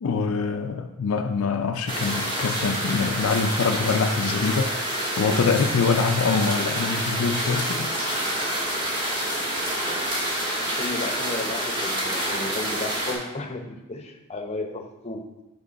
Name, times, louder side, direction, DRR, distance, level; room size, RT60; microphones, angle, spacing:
voice 1, 0.0-4.8 5.2-8.0 8.4-8.5 9.2-9.6, left 5 dB, 65° left, 5 dB, 0.4 m, -25 dB
sound 1, 1.9-13.1, right 1 dB, 25° right, 1.3 m, -27 dB
voice 2, 10.6-15.3, left 2 dB, 30° left, 4 dB, 0.7 m, -34 dB
7.5 x 5.2 x 4.0 m, 1.0 s
head